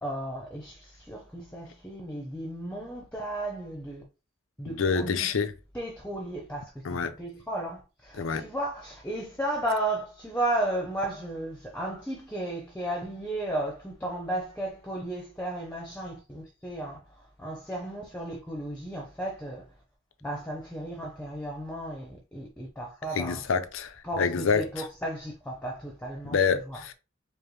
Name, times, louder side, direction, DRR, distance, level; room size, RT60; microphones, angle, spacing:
voice 1, 0.0-4.0 4.6-5.3 5.7-19.8 20.2-23.4 24.0-26.4 26.7-26.8, right 1 dB, 5° left, 0.7 m, -34 dB
voice 2, 4.6-5.5 6.8-7.2 8.2-8.4 23.1-24.9 26.2-26.9, left 5 dB, 80° left, 0.5 m, -27 dB
5.0 x 2.1 x 3.1 m
head